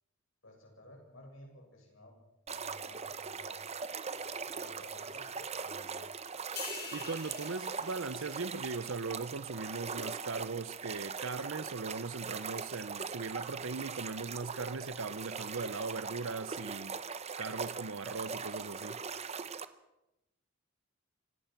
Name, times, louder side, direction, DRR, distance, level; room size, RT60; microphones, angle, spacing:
voice 1, 0.4-2.1 2.5-3.7 4.1-6.1, left 1 dB, 70° left, 7.4 m, -55 dB
sound 1, 2.5-19.6, right 5 dB, 30° right, 1.0 m, -41 dB
sound 2, 6.6-10.1 10.5-10.7, left 5 dB, 50° left, 5.8 m, -47 dB
voice 2, 6.9-17.0 17.4-19.0, right 4 dB, 70° right, 0.8 m, -39 dB
26.0 x 17.5 x 6.0 m
head